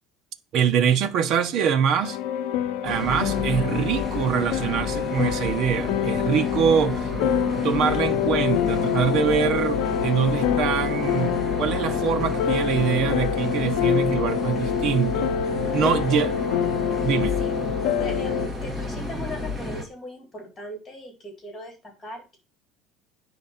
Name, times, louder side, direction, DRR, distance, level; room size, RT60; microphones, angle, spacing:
voice 1, 0.5-2.2 2.8-7.1 7.6-15.3 15.7-16.3 17.0-17.4, right 7 dB, 40° right, 1.0 m, -24 dB
sound 1, 2.0-18.5, left 8 dB, 60° left, 0.8 m, -26 dB
sound 2, 2.8-19.8, left 2 dB, 5° right, 1.6 m, -31 dB
voice 2, 15.8-16.3 17.4-17.5 18.0-22.4, left 1 dB, 15° left, 3.8 m, -38 dB
9.5 x 4.1 x 7.1 m
cardioid pair, 180°, 0 cm